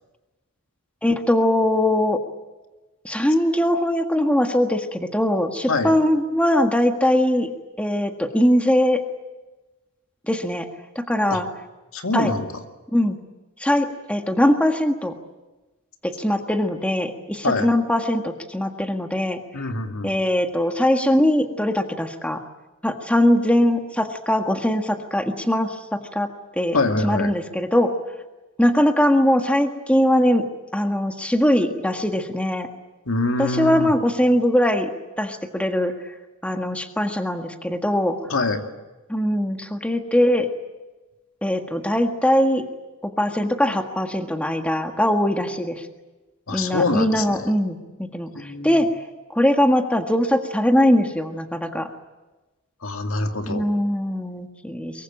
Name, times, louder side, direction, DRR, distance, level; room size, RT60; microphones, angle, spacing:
voice 1, 1.0-2.2 3.0-7.5 7.8-9.0 10.3-10.7 10.9-11.4 12.1-12.3 12.9-13.2 13.6-15.1 16.0-19.4 20.0-22.4 22.8-26.3 26.5-26.8 27.0-27.9 28.6-30.4 30.7-32.7 33.4-34.9 35.2-36.1 36.4-38.2 39.1-40.5 41.4-42.6 43.0-45.9 46.5-48.9 49.3-51.9 53.5-55.0, left 1 dB, 5° left, 5 dB, 1.6 m, -21 dB
voice 2, 11.9-12.5 17.4-17.7 19.5-20.1 26.7-27.3 33.1-33.9 38.3-38.6 46.5-47.5 48.3-48.8 52.8-53.7, left 3 dB, 65° left, 5 dB, 2.4 m, -24 dB
23.5 x 23.0 x 8.9 m, 1.1 s
head